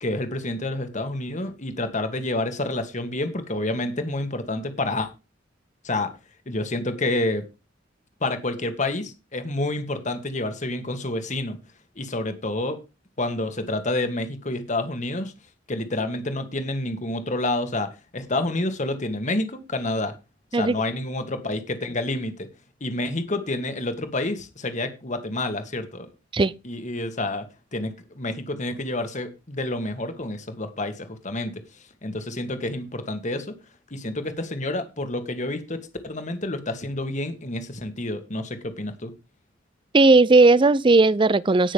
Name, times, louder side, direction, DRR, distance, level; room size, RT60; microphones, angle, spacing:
voice 1, 0.0-5.1 5.8-6.1 6.5-7.4 8.2-11.6 12.0-12.8 13.2-15.3 15.7-20.1 20.5-22.5 22.8-26.1 26.6-27.5 27.7-31.6 32.0-33.5 33.9-39.1, left 2 dB, 40° left, 1.8 m, -28 dB
voice 2, 39.9-41.7, right 3 dB, 25° right, 0.5 m, -16 dB
18.5 x 6.3 x 3.5 m
head